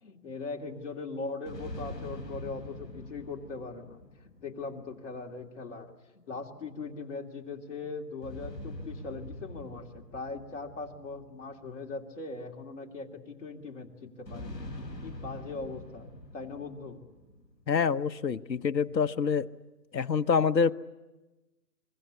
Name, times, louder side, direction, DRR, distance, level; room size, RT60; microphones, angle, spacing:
voice 1, 0.0-5.9 6.3-14.7 15.0-16.1 16.3-17.0, left 3 dB, 45° left, 0 dB, 2.8 m, -40 dB
sound 1, 1.5-5.1 8.2-11.9 14.3-17.7, left 1 dB, 5° left, 6.8 m, -44 dB
voice 2, 17.7-19.5 19.9-20.7, left 6 dB, 90° left, 12 dB, 1.0 m, -26 dB
24.0 x 23.0 x 8.4 m, 1.1 s
figure-of-eight pair, 160°, 49 cm